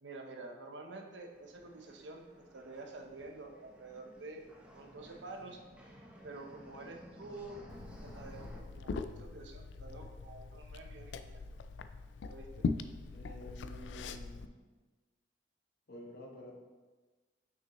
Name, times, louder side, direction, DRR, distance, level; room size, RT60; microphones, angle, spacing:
voice 1, 0.0-2.2 2.5-4.4 4.7-5.6 6.2-7.6 8.0-11.4 12.3-12.7, right 2 dB, 75° right, 3 dB, 0.8 m, -48 dB
sound 1, 1.1-8.6, equal, 5° right, 0.7 m, -56 dB
Liquid, 7.7-14.5, left 4 dB, 75° left, 0.3 m, -41 dB
voice 2, 13.1-14.5 15.9-16.5, equal, 55° left, -1 dB, 1.1 m, -50 dB
5.9 x 5.9 x 3.0 m, 1.3 s
head